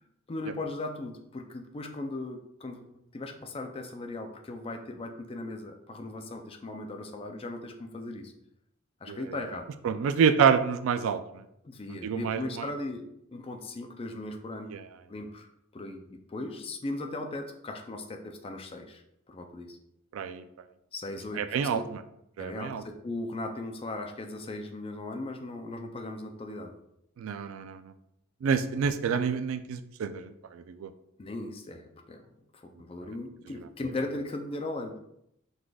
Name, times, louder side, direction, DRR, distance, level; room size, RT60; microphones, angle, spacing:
voice 1, 0.3-8.3 9.0-9.7 11.6-13.0 13.3-14.7 15.1-19.0 19.3-19.8 20.9-21.8 22.4-26.7 31.2-32.3 32.5-35.0, left 2 dB, 25° left, 5 dB, 0.4 m, -38 dB
voice 2, 9.1-9.4 9.8-11.4 11.9-12.6 14.7-14.8 20.1-20.4 21.4-22.0 22.4-22.8 27.2-27.8 28.4-30.9, right 6 dB, 80° right, 11 dB, 0.3 m, -28 dB
4.8 x 4.0 x 2.3 m, 0.79 s
head